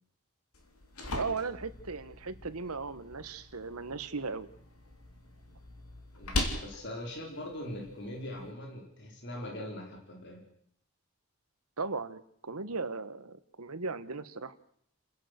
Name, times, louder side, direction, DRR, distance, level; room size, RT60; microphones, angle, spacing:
sound 1, 0.5-8.5, left 2 dB, 85° left, 3.4 m, -40 dB
voice 1, 1.1-4.5 11.8-14.6, right 4 dB, 85° right, 14 dB, 1.2 m, -37 dB
voice 2, 6.2-10.4, left 1 dB, 50° left, 1 dB, 3.9 m, -41 dB
29.5 x 11.0 x 8.1 m, 0.67 s
head